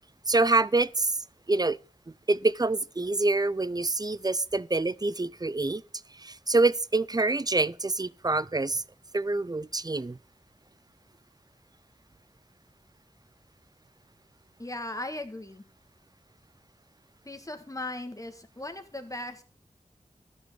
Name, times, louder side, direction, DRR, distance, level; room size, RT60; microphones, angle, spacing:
voice 1, 0.3-1.2 1.5-1.8 2.3-5.8 6.1-8.8 9.1-10.2, right 2 dB, 25° right, 0.5 m, -26 dB
voice 2, 14.6-15.6 17.3-19.4, left 1 dB, 25° left, 1.9 m, -38 dB
13.0 x 5.5 x 6.9 m
wide cardioid pair, 50°, 14 cm